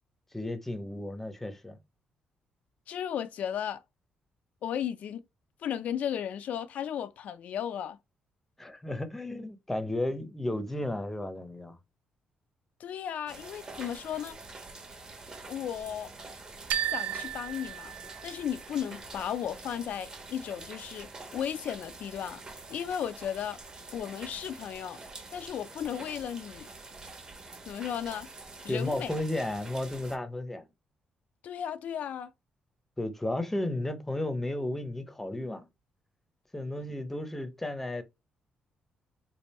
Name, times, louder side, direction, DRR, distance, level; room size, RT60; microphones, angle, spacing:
voice 1, 0.3-1.8 8.6-11.8 28.7-30.7 33.0-35.7 36.5-38.0, left 1 dB, 10° left, 0.7 m, -33 dB
voice 2, 2.9-3.8 4.6-5.2 5.6-8.0 12.8-14.4 15.5-16.1 16.9-17.9 18.2-22.4 22.7-23.6 23.9-25.0 25.3-26.7 27.7-28.3 28.6-29.1 31.4-32.3, left 9 dB, 65° left, 0.3 m, -35 dB
sound 1, 13.3-30.2, right 3 dB, 30° right, 1.0 m, -46 dB
sound 2, 16.7-18.6, right 11 dB, 85° right, 0.3 m, -34 dB
3.3 x 2.5 x 4.1 m
cardioid pair, 120°, 3 cm